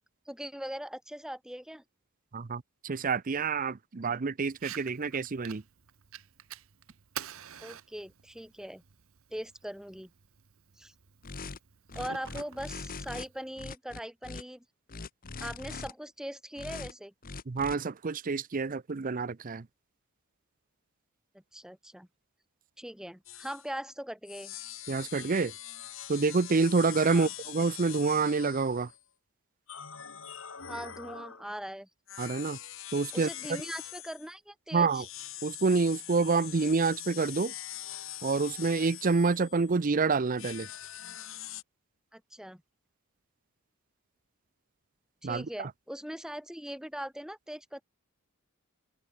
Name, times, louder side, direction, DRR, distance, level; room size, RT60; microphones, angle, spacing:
voice 1, 0.3-1.8 7.6-8.8 9.3-10.1 10.8-10.9 11.9-14.6 15.4-17.1 21.5-22.1 22.8-24.6 27.1-27.3 30.7-31.9 33.1-35.0 42.1-42.6 45.2-47.8, equal, 5° right, 2.5 m, -41 dB
voice 2, 2.3-5.6 17.5-19.7 24.9-25.5 26.1-28.9 32.2-32.6 32.9-33.6 34.7-35.1 35.4-37.5 38.2-40.7 45.2-45.7, right 4 dB, 40° right, 0.6 m, -28 dB
Fire, 4.5-13.5, right 8 dB, 70° right, 1.0 m, -48 dB
sound 1, 11.2-11.6 11.9-13.3 13.6-14.4 14.9-15.9 16.6-16.9 17.2-17.8, left 4 dB, 40° left, 1.1 m, -41 dB
sound 2, 23.3-23.7 24.3-29.0 29.7-31.5 32.1-34.3 34.9-39.8 40.4-41.6, left 12 dB, 65° left, 3.2 m, -43 dB
open air
head